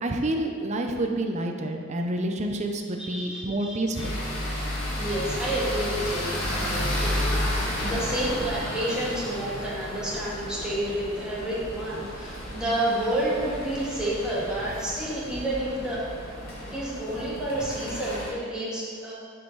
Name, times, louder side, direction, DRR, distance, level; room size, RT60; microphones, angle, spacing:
voice 1, 0.0-4.2, right 1 dB, 35° right, 3 dB, 0.7 m, -28 dB
voice 2, 3.0-4.1 4.9-7.1 7.4-16.1 16.6-19.1, right 1 dB, 5° right, -8 dB, 2.1 m, -30 dB
sound 1, 3.9-18.3, left 1 dB, 70° left, 2.0 m, -32 dB
9.8 x 5.4 x 4.8 m, 2.5 s
head